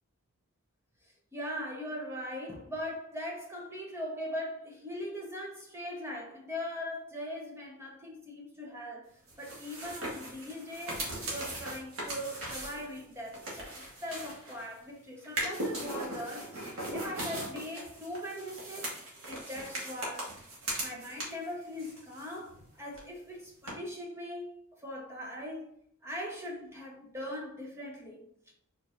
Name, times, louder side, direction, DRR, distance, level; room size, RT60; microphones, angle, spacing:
voice 1, 1.3-9.1 9.4-16.7 16.9-20.3 20.8-25.7 26.0-28.5, left 1 dB, 10° right, 1.0 m, -40 dB
sound 1, 9.3-14.8 15.2-21.5 21.8-22.7 22.9-23.0 23.7-23.8, right 1 dB, 70° right, 1.8 m, -39 dB
4.6 x 4.3 x 2.6 m
head